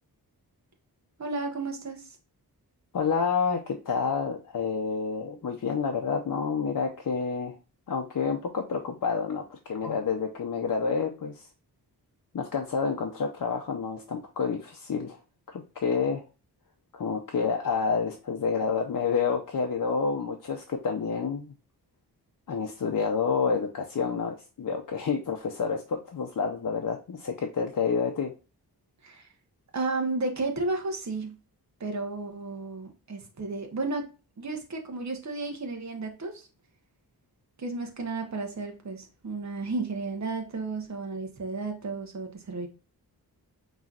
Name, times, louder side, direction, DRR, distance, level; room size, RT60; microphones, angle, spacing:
voice 1, 1.2-2.1 29.0-29.3 29.7-31.4 31.8-34.1 34.4-36.5 37.6-42.7, right 3 dB, 45° right, 1.1 m, -33 dB
voice 2, 2.9-7.6 7.9-11.5 12.3-15.2 15.5-16.2 16.9-21.5 22.5-28.3, left 5 dB, 55° left, 0.7 m, -29 dB
5.5 x 3.1 x 2.4 m
wide cardioid pair, 75°, 40 cm